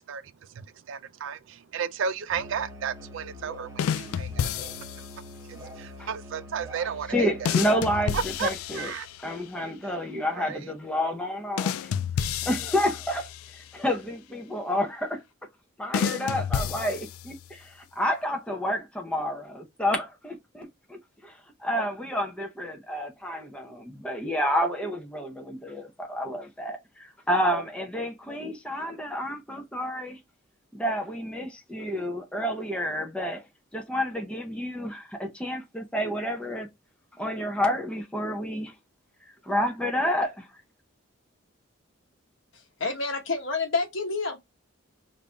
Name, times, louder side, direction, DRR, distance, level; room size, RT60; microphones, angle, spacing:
voice 1, 0.0-7.6 8.1-9.1 9.8-10.0 10.3-10.7, right 6 dB, 65° right, 0.3 m, -34 dB
Musical instrument, 2.3-7.9, equal, 15° right, 0.9 m, -44 dB
sound 1, 3.8-5.2 7.4-9.4 11.6-13.7 15.9-17.5, left 8 dB, 85° left, 0.3 m, -30 dB
voice 2, 7.1-8.9 9.2-11.9 12.4-13.3 13.7-15.2 15.8-30.2 30.7-33.4 33.7-36.7 37.2-38.7 39.4-40.5, equal, 5° left, 0.5 m, -29 dB
voice 3, 42.5-44.4, left 3 dB, 65° left, 1.0 m, -29 dB
5.2 x 2.5 x 2.2 m
head